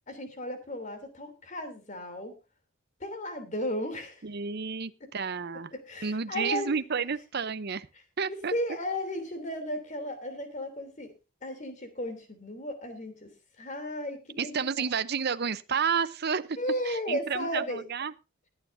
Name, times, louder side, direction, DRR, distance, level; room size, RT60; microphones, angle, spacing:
voice 1, 0.1-2.3 3.0-4.2 5.9-6.7 8.5-11.1 11.4-13.3 13.6-14.6 16.6-17.8, equal, 35° left, 8 dB, 3.2 m, -34 dB
voice 2, 4.2-5.7 6.0-7.9 8.2-8.5 14.4-16.6 16.9-18.1, right 6 dB, 50° right, 13 dB, 0.7 m, -31 dB
21.0 x 9.3 x 2.7 m, 0.29 s
head